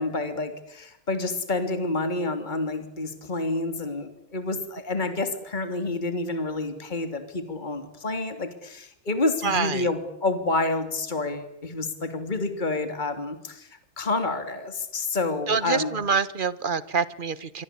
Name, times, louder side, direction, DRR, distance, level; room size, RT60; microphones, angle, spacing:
voice 1, 0.0-13.7 14.0-15.9, left 2 dB, 20° left, 8 dB, 3.2 m, -29 dB
voice 2, 9.4-9.9 15.5-17.6, right 5 dB, 35° right, 16 dB, 1.0 m, -26 dB
27.5 x 23.5 x 8.5 m, 0.75 s
omnidirectional pair, 2.2 m